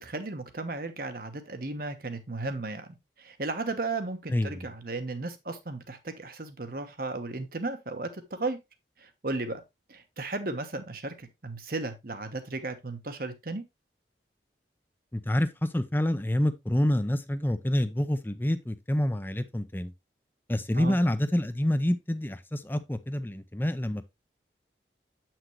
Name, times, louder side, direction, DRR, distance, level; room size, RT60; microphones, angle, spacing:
voice 1, 0.0-2.9 3.2-8.6 9.0-9.6 9.9-13.6 20.7-21.0, right 3 dB, 55° right, 1.2 m, -35 dB
voice 2, 4.3-4.6 15.1-19.9 20.5-24.0, left 1 dB, 10° left, 0.6 m, -27 dB
8.2 x 6.0 x 3.1 m
head